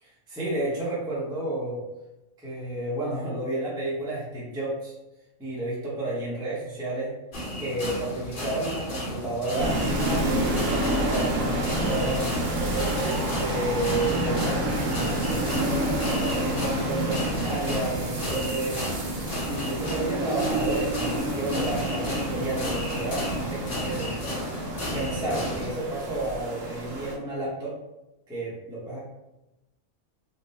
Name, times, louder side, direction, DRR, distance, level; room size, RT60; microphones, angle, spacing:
voice 1, 0.3-1.8 2.4-4.9 5.4-7.1 7.6-10.5 11.1-18.8 19.5-24.3 24.9-27.8 28.3-29.0, right 2 dB, 5° right, -6 dB, 0.7 m, -31 dB
sound 1, 7.3-25.7, equal, 45° left, 1.0 m, -33 dB
sound 2, 9.6-27.2, right 1 dB, 85° right, 1.1 m, -29 dB
3.6 x 2.0 x 4.0 m, 0.95 s
omnidirectional pair, 1.3 m